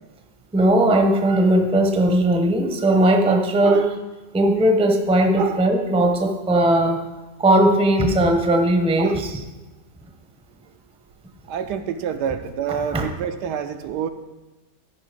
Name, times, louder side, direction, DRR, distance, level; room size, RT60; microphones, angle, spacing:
voice 1, 0.5-3.8 4.3-7.0 7.4-9.1 12.9-13.0, right 1 dB, 5° right, 4 dB, 0.5 m, -18 dB
voice 2, 11.5-14.1, right 8 dB, 75° right, 8 dB, 1.2 m, -27 dB
13.5 x 5.5 x 5.1 m, 1.1 s
omnidirectional pair, 1.9 m